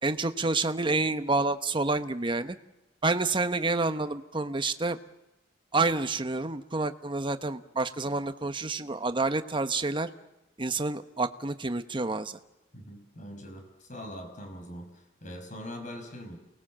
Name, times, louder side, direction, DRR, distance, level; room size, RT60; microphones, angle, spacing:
voice 1, 0.0-2.6 3.0-5.0 5.7-10.1 10.6-12.4, right 3 dB, 25° right, 9 dB, 1.1 m, -28 dB
voice 2, 12.7-16.4, equal, 40° left, 5 dB, 6.1 m, -42 dB
29.0 x 20.0 x 7.5 m, 0.97 s
head